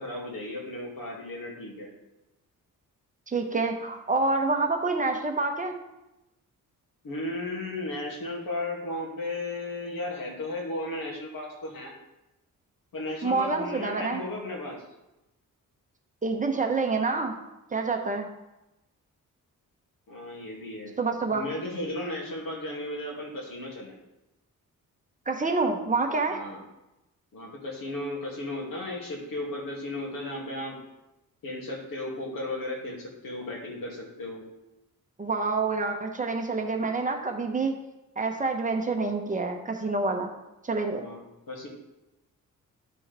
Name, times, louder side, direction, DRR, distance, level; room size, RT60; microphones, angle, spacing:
voice 1, 0.0-1.9 7.0-11.9 12.9-14.8 20.1-21.0 21.3-24.0 26.3-26.6 27.3-30.8 31.4-34.4 40.9-41.7, left 1 dB, 85° left, -2 dB, 2.4 m, -35 dB
voice 2, 3.3-5.7 13.2-14.2 16.2-17.4 17.7-18.3 21.0-21.4 25.3-26.4 35.2-37.7 38.2-40.3 40.6-41.0, right 3 dB, 25° right, 3 dB, 0.9 m, -27 dB
11.0 x 6.2 x 3.4 m, 0.96 s
wide cardioid pair, 135°, 33 cm